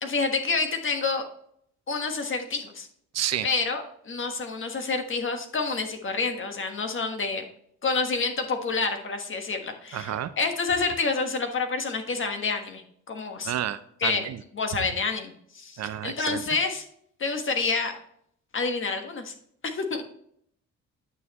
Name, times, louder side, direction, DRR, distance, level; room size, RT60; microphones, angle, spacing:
voice 1, 0.0-1.2 1.9-2.9 3.4-7.4 7.8-13.5 14.0-14.3 14.5-16.8 17.2-18.0 18.5-19.3 19.6-20.0, left 4 dB, 40° left, 5 dB, 1.4 m, -28 dB
voice 2, 3.1-3.5 9.9-10.3 13.4-14.4 15.8-16.4, right 11 dB, 60° right, 13 dB, 0.6 m, -30 dB
9.0 x 6.6 x 3.0 m, 0.68 s
cardioid pair, 90°, 30 cm